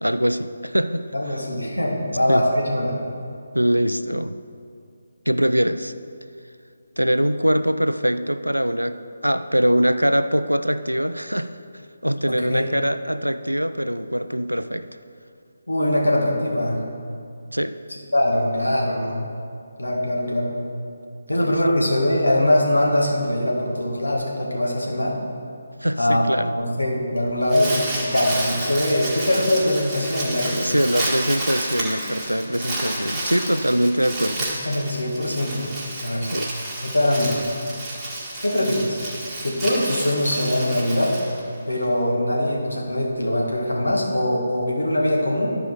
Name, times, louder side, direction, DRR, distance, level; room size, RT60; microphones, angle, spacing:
voice 1, 0.0-1.4 2.3-2.5 3.5-4.4 5.3-5.9 7.0-11.6 12.0-14.9 17.5-17.8 21.3-21.5 25.8-26.6 30.5-34.4 36.2-36.5, equal, 85° right, 11 dB, 0.4 m, -23 dB
voice 2, 1.1-3.0 12.3-12.6 15.7-16.8 18.1-19.2 19.8-20.5 21.3-25.2 26.0-26.2 26.6-30.6 34.6-35.7 36.0-36.3 36.8-37.4 38.4-39.0 39.4-41.1 41.7-45.6, left 1 dB, 75° left, -2 dB, 2.0 m, -22 dB
Crumpling crinkling, 27.2-41.8, right 1 dB, 5° right, 1.7 m, -30 dB
12.0 x 4.9 x 4.8 m, 2.5 s
figure-of-eight pair, 150°, 0 cm